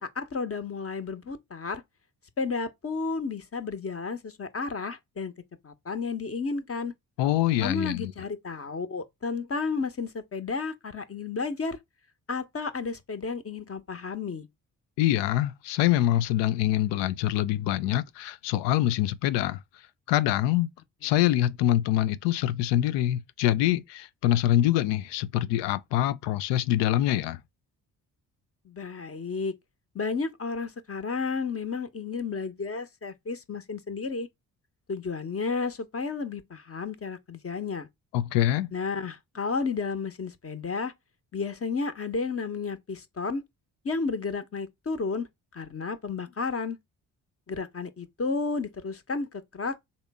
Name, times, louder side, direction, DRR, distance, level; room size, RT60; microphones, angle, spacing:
voice 1, 0.0-1.8 2.4-5.3 5.6-6.9 7.6-11.8 12.3-14.5 28.6-29.5 29.9-34.3 34.9-37.9 38.7-40.9 41.3-43.4 43.8-45.3 45.5-46.8 47.5-49.8, left 4 dB, 30° left, 1.0 m, -32 dB
voice 2, 7.2-8.1 15.0-19.6 20.1-20.7 21.0-27.4 38.1-38.7, left 13 dB, 70° left, 0.6 m, -25 dB
4.2 x 3.5 x 3.5 m
hypercardioid pair, 45°, 44 cm